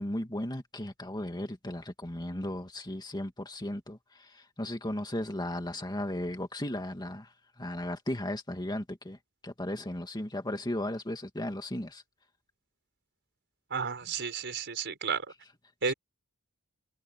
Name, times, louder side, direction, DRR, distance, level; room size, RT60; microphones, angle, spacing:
voice 1, 0.0-7.3 7.6-9.2 9.4-12.0 15.9-16.0, left 1 dB, 20° left, 2.1 m, -35 dB
voice 2, 13.7-15.2 15.8-15.9, right 5 dB, 55° right, 4.8 m, -32 dB
head